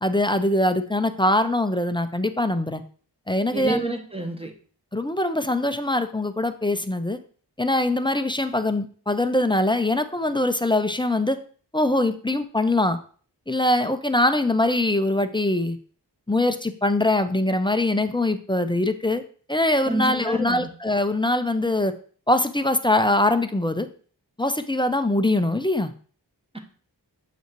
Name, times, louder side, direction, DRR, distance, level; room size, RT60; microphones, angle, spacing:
voice 1, 0.0-2.8 3.3-3.9 4.9-7.2 7.6-11.4 11.7-13.0 13.5-15.8 16.3-19.2 19.5-21.9 22.3-23.9 24.4-25.9, left 1 dB, 10° left, 9 dB, 0.5 m, -22 dB
voice 2, 3.5-4.5 19.9-20.7 26.5-26.6, right 2 dB, 15° right, 3 dB, 1.1 m, -28 dB
7.7 x 5.5 x 3.0 m, 0.43 s
wide cardioid pair, 60°, 42 cm